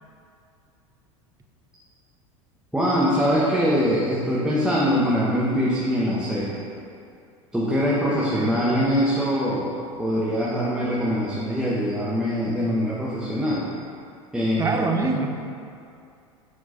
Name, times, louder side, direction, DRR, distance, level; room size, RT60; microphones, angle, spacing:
voice 1, 2.7-6.5 7.5-13.7 14.3-14.9, equal, 5° right, -8 dB, 1.0 m, -23 dB
voice 2, 8.1-8.7 14.6-15.3, right 3 dB, 20° right, 4 dB, 0.7 m, -25 dB
6.5 x 4.4 x 4.2 m, 2.5 s
hypercardioid pair, 80°, 16 cm